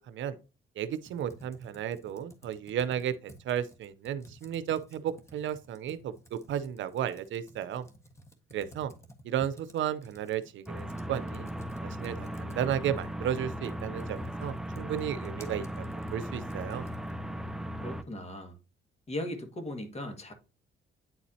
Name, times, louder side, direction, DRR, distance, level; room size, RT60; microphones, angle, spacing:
voice 1, 0.1-0.4 0.8-7.9 8.5-8.9 9.2-11.5 11.8-16.9, right 10 dB, 75° right, 0.7 m, -34 dB
Computer keyboard, 0.9-17.3, equal, 15° left, 1.4 m, -55 dB
sound 1, 10.7-18.0, equal, ahead, 0.5 m, -37 dB
voice 2, 17.8-18.6 19.1-20.3, left 1 dB, 35° left, 1.8 m, -38 dB
9.4 x 4.2 x 2.8 m
cardioid pair, 90°, 20 cm